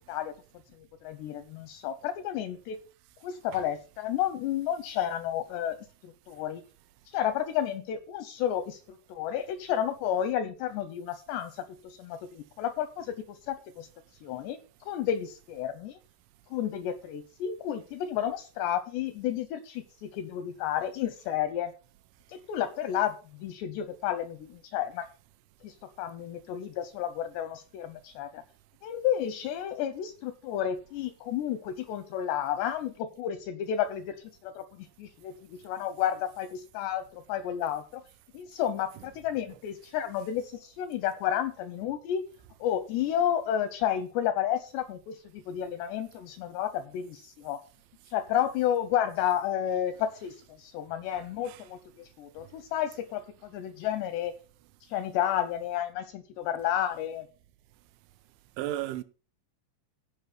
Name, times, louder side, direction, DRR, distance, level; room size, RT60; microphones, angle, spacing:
voice 1, 0.7-2.8 3.2-5.8 6.0-6.6 7.1-13.9 14.2-16.0 16.5-21.7 22.3-25.1 25.6-28.4 28.8-34.2 34.4-38.0 38.3-42.2 42.6-47.6 48.1-54.3 54.8-57.3, left 10 dB, 85° left, 2.5 m, -31 dB
voice 2, 51.1-51.6 58.6-59.0, right 13 dB, 80° right, 3.0 m, -35 dB
15.0 x 5.4 x 5.8 m
omnidirectional pair, 5.7 m